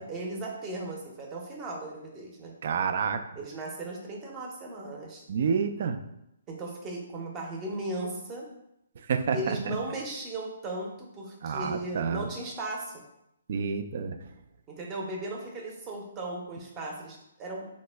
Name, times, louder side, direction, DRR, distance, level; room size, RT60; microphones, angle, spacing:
voice 1, 0.0-2.5 3.3-5.2 6.5-8.5 9.3-13.0 14.7-17.7, right 2 dB, 20° right, 0 dB, 0.6 m, -36 dB
voice 2, 2.6-3.2 5.3-6.0 9.1-9.6 11.4-12.2 13.5-14.2, right 6 dB, 55° right, 8 dB, 0.3 m, -28 dB
3.5 x 2.1 x 3.3 m, 0.83 s
hypercardioid pair, 155°, 0 cm